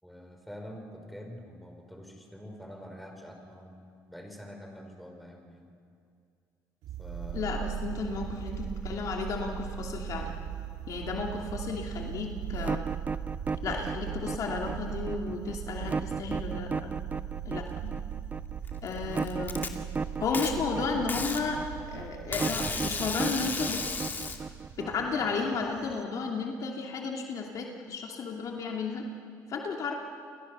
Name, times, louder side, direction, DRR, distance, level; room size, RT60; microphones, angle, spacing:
voice 1, 0.0-5.7 7.0-7.5, equal, ahead, 2 dB, 5.2 m, -46 dB
sound 1, 6.8-26.0, right 9 dB, 75° right, 1.9 m, -39 dB
voice 2, 7.3-10.3 10.9-12.9 13.6-16.9 17.4-17.9 18.8-19.8 20.2-21.6 21.9-23.8 24.8-29.1 29.5-29.9, left 4 dB, 55° left, 1 dB, 2.8 m, -33 dB
sound 2, 12.6-25.5, right 4 dB, 25° right, 0.5 m, -34 dB
Packing tape duct tape, 18.7-19.7 20.3-20.5 21.1-21.4 22.3-24.4, left 4 dB, 25° left, 2.6 m, -34 dB
30.0 x 22.5 x 6.9 m, 2.3 s
cardioid pair, 105°, 7 cm